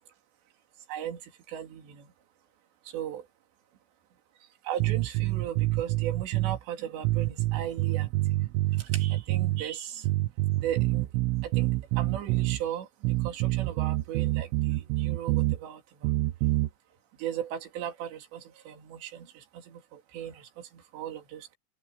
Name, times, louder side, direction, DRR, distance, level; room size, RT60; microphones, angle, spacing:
voice 1, 0.9-1.2 1.5-2.1 2.9-3.2 4.7-8.1 8.8-10.1 10.6-11.1 11.4-12.9 13.2-15.8 17.2-20.5 20.9-21.6, right 10 dB, 65° right, 4.8 m, -37 dB
sound 1, 4.8-6.6 7.0-9.6 10.0-12.6 13.0-15.6 16.0-16.7, right 19 dB, 90° right, 3.4 m, -27 dB
open air
omnidirectional pair, 5.5 m